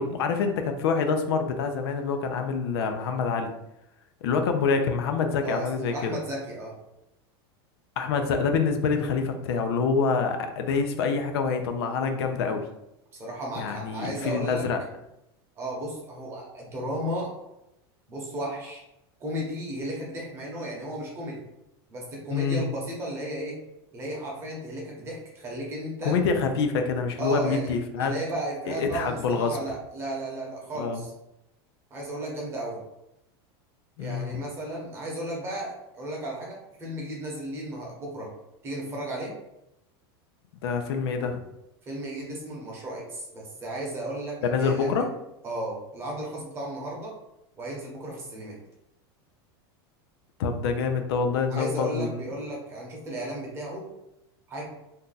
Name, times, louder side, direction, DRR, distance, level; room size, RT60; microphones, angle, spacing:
voice 1, 0.0-3.5 4.2-6.1 8.0-12.6 13.6-14.8 22.3-22.6 26.0-28.1 28.7-29.6 30.7-31.0 34.0-34.4 40.6-41.4 44.4-45.1 50.4-52.2, left 5 dB, 80° left, 6 dB, 0.5 m, -26 dB
voice 2, 5.4-6.7 13.1-14.7 15.6-17.3 18.1-18.8 19.2-21.4 21.9-23.6 23.9-26.2 27.2-27.7 28.0-31.1 31.9-32.8 34.0-38.3 38.6-39.3 41.8-45.0 45.4-47.1 47.6-48.6 51.5-53.8 54.5-54.7, right 1 dB, 20° right, -3 dB, 0.8 m, -34 dB
2.7 x 2.2 x 3.8 m, 0.86 s
supercardioid pair, 170°, 13 cm